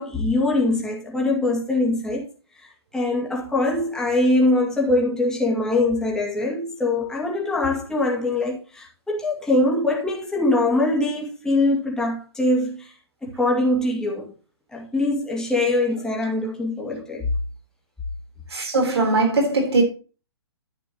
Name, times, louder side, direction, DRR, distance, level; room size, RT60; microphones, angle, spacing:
voice 1, 0.0-2.3 2.6-2.7 2.9-12.9 13.2-14.3 14.7-17.3, left 2 dB, 5° left, 2.2 m, -23 dB
voice 2, 18.5-19.8, right 3 dB, 75° right, 3.6 m, -20 dB
11.0 x 8.4 x 2.9 m
figure-of-eight pair, 125°, 14 cm